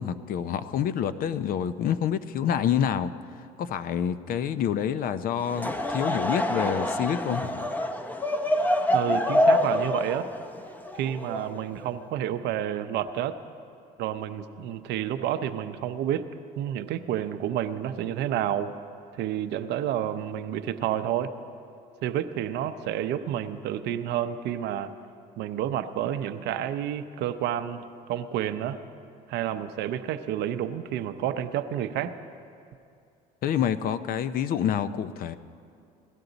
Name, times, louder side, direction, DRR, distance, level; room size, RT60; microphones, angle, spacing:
voice 1, 0.0-3.1 3.4-7.7 33.4-35.4, left 9 dB, 50° left, 13 dB, 0.5 m, -27 dB
Laughter / Crowd, 5.4-11.8, left 1 dB, 10° left, 0.7 m, -26 dB
voice 2, 8.9-10.3 11.0-13.3 14.0-16.3 16.6-18.7 19.2-21.3 22.0-24.9 25.4-28.8 29.3-32.1, right 10 dB, 70° right, 10 dB, 0.7 m, -30 dB
17.5 x 12.5 x 4.0 m, 2.5 s
supercardioid pair, 100°, 18 cm